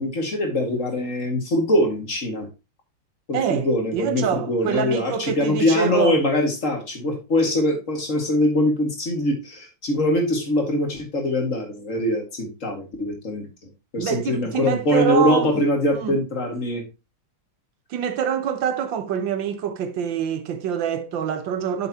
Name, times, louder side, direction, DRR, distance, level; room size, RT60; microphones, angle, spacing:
voice 1, 0.0-2.5 3.3-13.5 13.9-16.8, left 1 dB, 45° left, 2.2 m, -23 dB
voice 2, 3.3-6.2 14.0-15.6 15.9-16.2 17.9-21.9, right 8 dB, 85° right, 1.7 m, -25 dB
8.5 x 6.8 x 2.8 m
omnidirectional pair, 2.0 m